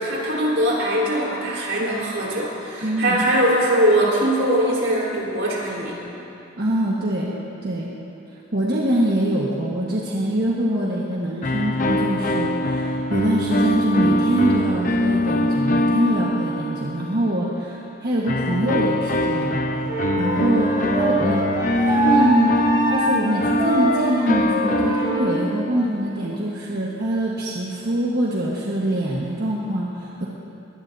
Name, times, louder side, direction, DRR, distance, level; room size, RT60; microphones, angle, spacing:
voice 1, 0.0-6.0, right 1 dB, 85° right, -4 dB, 4.2 m, -21 dB
voice 2, 2.8-3.2 6.6-7.3 7.6-7.9 8.5-19.6 20.2-21.4 21.9-22.6 22.9-30.3, right 1 dB, 55° right, -5 dB, 1.4 m, -24 dB
sound 1, 11.4-17.2 18.3-25.7, left 1 dB, 45° left, 0.8 m, -23 dB
Wind instrument woodwind instrument, 19.9-25.3, right 2 dB, 20° right, 4.2 m, -24 dB
22.0 x 19.0 x 2.7 m, 2.9 s
head